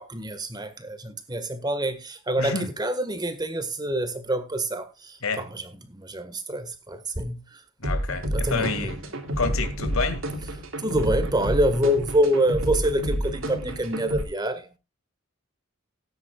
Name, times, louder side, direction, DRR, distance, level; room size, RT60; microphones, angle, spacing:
voice 1, 0.0-7.6 8.3-8.9 10.8-14.7, right 1 dB, 20° right, 1.6 m, -26 dB
voice 2, 2.4-2.7 5.2-5.5 7.8-9.0 9.4-10.2, left 4 dB, 90° left, 2.2 m, -28 dB
sound 1, 7.8-14.2, equal, 80° right, 2.8 m, -29 dB
18.5 x 9.7 x 2.4 m
head